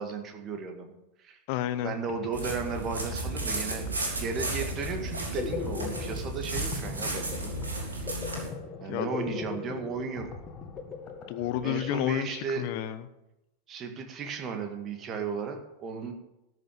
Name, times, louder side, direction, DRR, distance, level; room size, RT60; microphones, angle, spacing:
voice 1, 0.0-1.4 1.8-8.1 8.8-10.3 11.6-12.6 13.7-16.1, right 5 dB, 30° right, 5 dB, 2.0 m, -35 dB
voice 2, 1.5-2.0 8.9-9.1 11.3-13.0, left 12 dB, 45° left, 11 dB, 0.8 m, -31 dB
sound 1, 2.1-12.7, left 5 dB, 25° left, 1.9 m, -40 dB
sound 2, 2.3-8.5, right 2 dB, 75° right, 3.3 m, -33 dB
13.0 x 6.5 x 8.7 m, 0.91 s
figure-of-eight pair, 90°, 0 cm